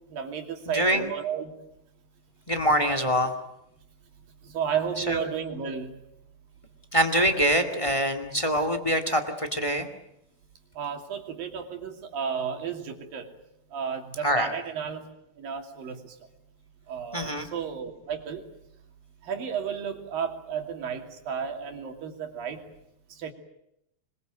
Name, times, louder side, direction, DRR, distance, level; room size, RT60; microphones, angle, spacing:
voice 1, 0.1-1.5 4.4-5.9 10.8-13.3 13.7-15.1 15.4-16.1 16.9-18.5 19.2-22.6 23.1-23.3, right 7 dB, 60° right, 5 dB, 4.2 m, -33 dB
voice 2, 0.7-1.1 2.5-3.3 5.1-5.2 6.9-9.9 14.2-14.5 17.1-17.5, equal, 20° left, 8 dB, 0.9 m, -24 dB
26.5 x 22.5 x 9.2 m, 0.79 s
omnidirectional pair, 4.8 m